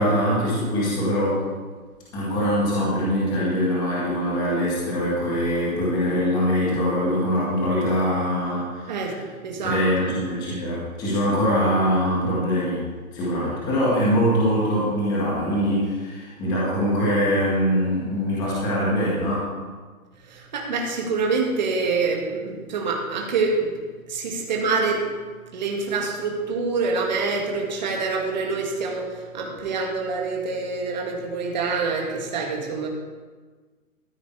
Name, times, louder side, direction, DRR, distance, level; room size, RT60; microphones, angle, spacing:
voice 1, 0.0-1.4 2.1-9.1 9.6-12.9 13.1-19.5, equal, 10° left, -7 dB, 1.9 m, -23 dB
voice 2, 8.9-10.1 20.3-23.7 24.1-25.1 25.5-32.9, right 4 dB, 30° right, 0 dB, 1.9 m, -26 dB
13.5 x 8.9 x 4.7 m, 1.4 s
hypercardioid pair, 170°, 44 cm